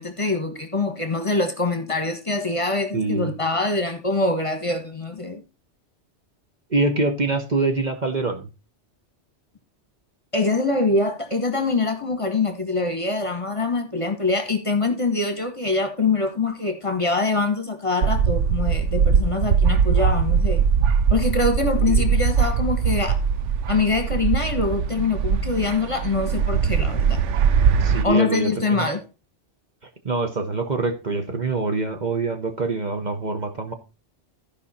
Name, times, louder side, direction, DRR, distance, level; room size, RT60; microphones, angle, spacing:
voice 1, 0.0-5.4 10.3-20.6 21.1-23.2 23.7-27.2 28.0-29.0, left 3 dB, 30° left, 1.4 m, -24 dB
voice 2, 2.9-3.3 6.7-8.5 21.9-22.1 27.8-28.9 30.0-33.7, right 3 dB, 40° right, 1.1 m, -25 dB
sound 1, 18.0-28.0, right 6 dB, 90° right, 1.0 m, -21 dB
14.0 x 5.2 x 4.2 m
omnidirectional pair, 1.2 m